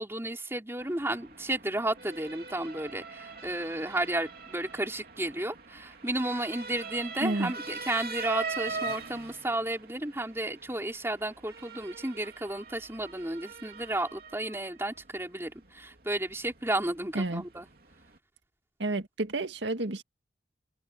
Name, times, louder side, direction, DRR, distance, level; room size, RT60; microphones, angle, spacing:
voice 1, 0.0-17.7, right 1 dB, 15° right, 3.9 m, -33 dB
Motor vehicle (road) / Siren, 0.8-18.2, right 4 dB, 55° right, 3.1 m, -43 dB
voice 2, 7.2-7.5 17.1-17.4 18.8-20.0, right 2 dB, 75° right, 2.0 m, -30 dB
head